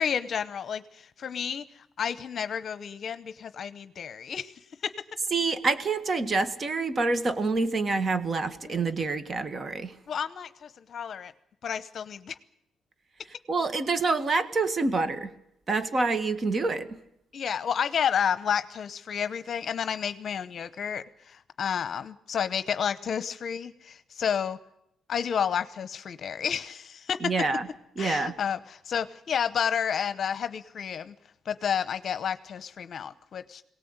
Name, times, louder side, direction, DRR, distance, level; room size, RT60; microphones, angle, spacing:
voice 1, 0.0-1.6 2.0-4.5 4.8-4.9 8.6-8.8 10.1-11.3 11.6-12.3 17.3-24.6 25.1-27.3 28.0-31.1 31.5-33.6, left 8 dB, 55° left, 12 dB, 0.9 m, -31 dB
voice 2, 5.3-9.9 13.5-15.3 15.7-17.0 27.2-27.7 28.0-28.3, right 3 dB, 35° right, 11 dB, 1.7 m, -27 dB
22.5 x 18.0 x 8.1 m, 0.80 s
cardioid pair, 90°, 0 cm